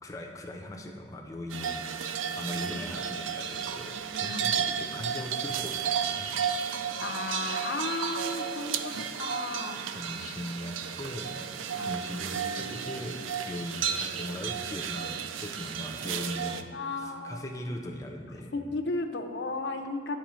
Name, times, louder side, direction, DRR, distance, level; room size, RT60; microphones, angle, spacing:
voice 1, 0.0-1.8 2.4-6.3 8.9-9.1 9.9-11.3 11.8-16.7 17.0-18.5, left 1 dB, 15° left, 2 dB, 0.5 m, -39 dB
sound 1, 1.5-16.6, right 7 dB, 90° right, 0.4 m, -33 dB
voice 2, 7.0-9.8 11.8-12.0 16.7-17.4 18.5-20.2, left 3 dB, 65° left, 6 dB, 0.5 m, -34 dB
10.5 x 4.6 x 3.1 m, 2.2 s
head